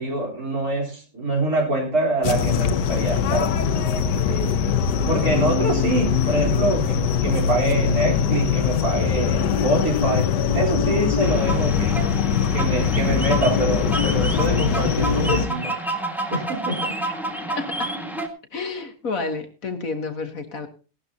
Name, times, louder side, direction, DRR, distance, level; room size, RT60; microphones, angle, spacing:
voice 1, 0.0-3.6 4.2-4.5 5.1-12.0 12.5-15.7 16.3-16.9, right 1 dB, 60° right, -2 dB, 4.4 m, -25 dB
sound 1, 2.2-15.5, left 7 dB, 75° left, 1.5 m, -22 dB
sound 2, 11.2-18.3, right 2 dB, ahead, 1.5 m, -29 dB
voice 2, 17.5-17.9 18.5-20.7, left 4 dB, 55° left, 7 dB, 1.7 m, -30 dB
17.0 x 12.5 x 2.8 m, 0.34 s
omnidirectional pair, 1.8 m